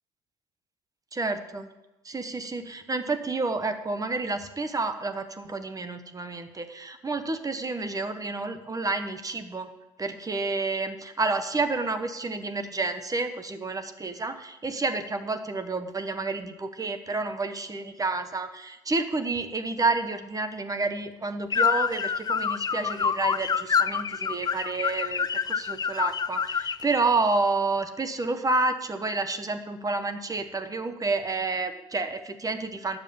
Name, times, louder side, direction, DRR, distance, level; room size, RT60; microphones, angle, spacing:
voice 1, 1.1-1.7 2.0-9.7 10.0-33.0, right 3 dB, 25° right, 8 dB, 1.1 m, -29 dB
sound 1, 21.5-26.9, left 6 dB, 30° left, 0.4 m, -27 dB
9.7 x 7.1 x 6.9 m, 1.0 s
hypercardioid pair, 60°, 14 cm